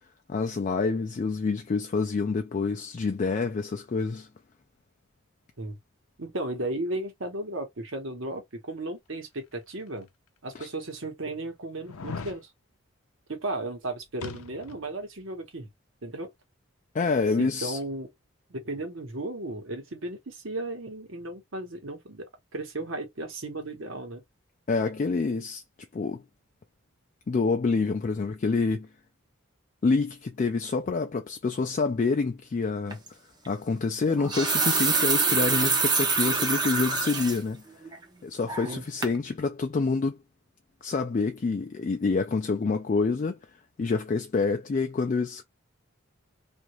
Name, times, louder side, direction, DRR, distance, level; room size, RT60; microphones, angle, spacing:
voice 1, 0.3-4.3 10.6-10.7 16.9-17.8 24.7-25.6 25.9-26.2 27.3-28.9 29.8-33.0 33.5-37.6 38.2-40.2 40.8-43.4 43.8-45.4, left 4 dB, 35° left, 0.3 m, -27 dB
voice 2, 6.2-10.1 10.4-12.5 13.3-15.7 16.0-16.3 17.4-18.1 18.5-22.3 22.5-24.2 38.7-38.8, right 2 dB, 65° right, 1.0 m, -35 dB
sound 1, 9.9-10.0 10.6-10.7 11.8-12.4 14.2-14.9 15.2-15.3, left 5 dB, 90° left, 0.5 m, -39 dB
sound 2, 32.9-33.1 34.1-37.4 37.9-38.0 38.5-38.8 39.0-39.2, right 4 dB, 20° right, 0.5 m, -25 dB
2.8 x 2.5 x 3.0 m
head